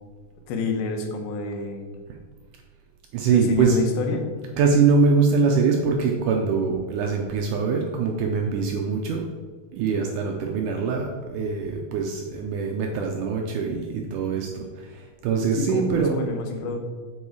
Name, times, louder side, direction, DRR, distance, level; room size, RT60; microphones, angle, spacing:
voice 1, 0.5-1.9 3.3-4.2 15.6-16.8, left 3 dB, 90° left, 4 dB, 2.8 m, -28 dB
voice 2, 3.1-3.8 4.6-9.2 9.7-16.1, right 5 dB, 80° right, 2 dB, 1.9 m, -23 dB
8.6 x 4.7 x 4.7 m, 1.5 s
omnidirectional pair, 4.2 m